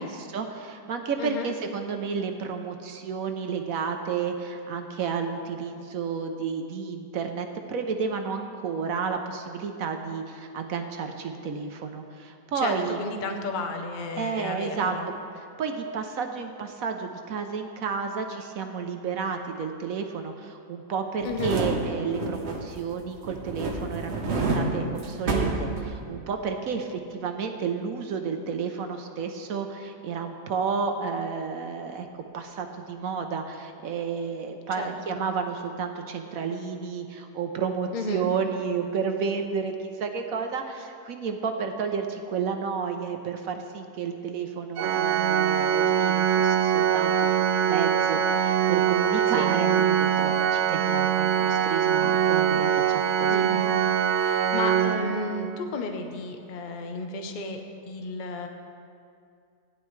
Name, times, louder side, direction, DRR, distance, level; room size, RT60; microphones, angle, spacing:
voice 1, 0.0-13.0 14.2-14.9 15.6-32.1 32.3-47.3 47.6-53.5, right 5 dB, 65° right, 5 dB, 1.0 m, -31 dB
voice 2, 1.2-1.5 12.5-15.1 21.2-21.6 34.8-35.3 37.9-38.3 49.4-49.5 53.3-53.7 54.1-58.5, left 3 dB, 40° left, 4 dB, 0.7 m, -33 dB
sound 1, 21.2-22.9 23.2-26.3 26.7-26.8, right 2 dB, 45° right, 1.2 m, -29 dB
Organ, 44.8-55.6, right 9 dB, 85° right, 0.6 m, -23 dB
16.0 x 10.5 x 3.2 m, 2.4 s
omnidirectional pair, 1.8 m